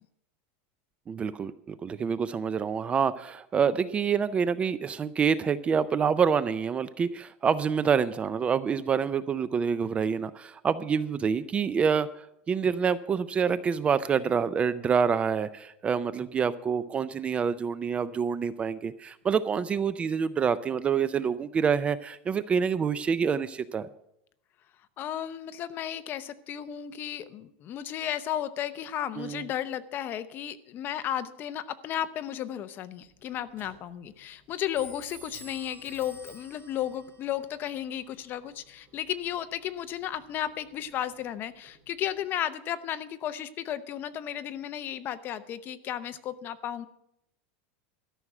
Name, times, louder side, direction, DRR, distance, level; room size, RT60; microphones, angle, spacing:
voice 1, 1.1-23.9 29.2-29.4, right 6 dB, 20° right, 15 dB, 0.4 m, -27 dB
voice 2, 25.0-46.9, left 11 dB, 35° left, 13 dB, 0.7 m, -34 dB
Clock, 33.0-42.2, right 2 dB, 35° right, 4.1 m, -53 dB
13.0 x 6.2 x 9.1 m, 0.77 s
supercardioid pair, 145°, 6 cm